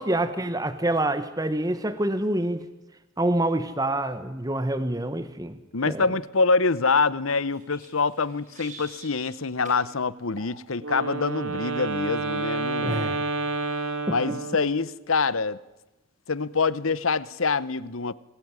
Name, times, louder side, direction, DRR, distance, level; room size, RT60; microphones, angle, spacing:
voice 1, 0.0-2.6 3.2-5.6 5.9-6.1 12.8-13.2 14.1-14.4, right 1 dB, 15° right, 1.3 m, -26 dB
voice 2, 5.7-13.0 14.1-15.6 16.3-18.1, left 4 dB, 75° left, 1.0 m, -25 dB
sound 1, 7.5-9.3 9.6-9.8 10.4-10.6, right 3 dB, 35° right, 7.3 m, -46 dB
Wind instrument woodwind instrument, 10.8-14.9, right 3 dB, 90° right, 3.6 m, -29 dB
26.0 x 20.5 x 9.8 m
head